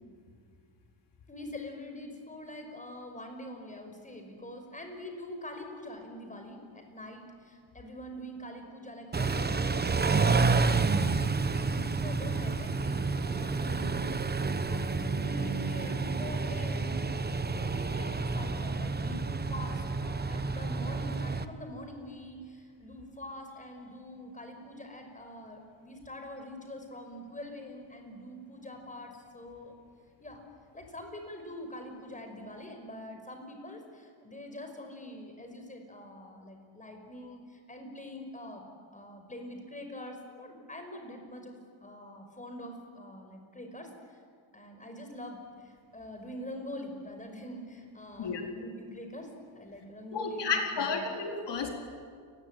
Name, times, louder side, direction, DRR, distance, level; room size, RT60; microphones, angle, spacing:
voice 1, 1.3-17.0 17.5-29.8 30.2-30.4 30.7-38.6 38.9-44.2 44.5-51.1, left 1 dB, 15° left, 4 dB, 5.5 m, -44 dB
Car / Idling / Accelerating revving vroom, 9.1-21.5, right 4 dB, 20° right, 1.1 m, -29 dB
voice 2, 50.1-51.7, left 4 dB, 55° left, 2 dB, 4.2 m, -31 dB
29.0 x 21.0 x 9.1 m, 2.1 s
cardioid pair, 120°, 49 cm